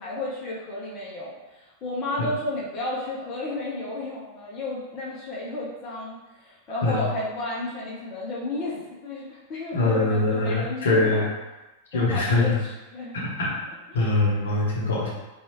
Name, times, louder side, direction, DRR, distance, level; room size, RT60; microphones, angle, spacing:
voice 1, 0.0-11.3 11.9-13.2 13.9-14.1, left 2 dB, 35° left, -6 dB, 0.7 m, -33 dB
voice 2, 9.7-11.3 11.9-12.6 13.1-13.5 13.9-15.1, left 2 dB, 65° left, -5 dB, 0.8 m, -23 dB
2.7 x 2.3 x 3.0 m, 1.1 s
figure-of-eight pair, 90°, 0 cm